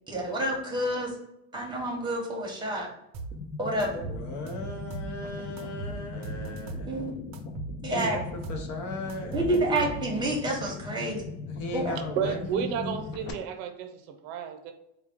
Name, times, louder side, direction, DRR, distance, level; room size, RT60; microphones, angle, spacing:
voice 1, 0.1-1.1 1.5-2.9 3.6-4.0 6.9-7.1 7.8-8.2 9.3-11.2 11.7-12.0, right 1 dB, 10° right, -1 dB, 1.0 m, -28 dB
sound 1, 3.1-3.4 3.8-5.2 5.6-6.9 7.3-8.7 9.1-10.3, right 4 dB, 45° right, 0.6 m, -39 dB
sound 2, 3.3-13.3, left 4 dB, 30° left, 0.5 m, -40 dB
voice 2, 4.0-6.9 7.9-9.4 11.5-13.0, left 2 dB, 50° left, 3 dB, 0.8 m, -37 dB
voice 3, 12.2-14.7, right 7 dB, 90° right, 6 dB, 0.7 m, -32 dB
4.0 x 2.3 x 3.4 m, 0.82 s
cardioid pair, 140°, 38 cm